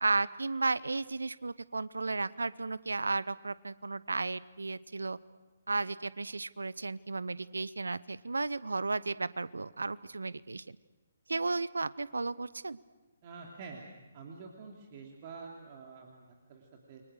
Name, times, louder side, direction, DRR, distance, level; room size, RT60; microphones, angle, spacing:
voice 1, 0.0-5.2 5.7-10.8 11.3-12.8, right 3 dB, 70° right, 19 dB, 0.7 m, -34 dB
voice 2, 13.2-13.8 14.1-17.0, right 4 dB, 35° right, 0 dB, 2.9 m, -48 dB
30.0 x 23.5 x 6.5 m, 1.1 s
figure-of-eight pair, 135°, 0 cm